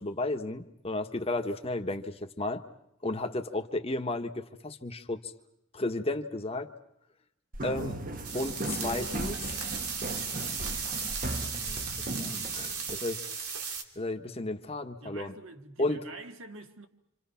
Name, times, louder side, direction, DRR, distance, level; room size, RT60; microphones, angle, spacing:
voice 1, 0.0-2.6 3.0-5.3 5.7-6.7 7.6-8.0 8.3-9.5 11.4-13.4 13.9-15.3 15.8-16.0, left 2 dB, 25° left, 1.4 m, -33 dB
sound 1, 7.5-13.0, right 1 dB, 40° right, 1.2 m, -37 dB
sound 2, 8.2-13.8, right 5 dB, 85° right, 2.9 m, -36 dB
voice 2, 15.0-16.9, right 2 dB, 60° right, 2.0 m, -46 dB
28.0 x 27.0 x 5.8 m
head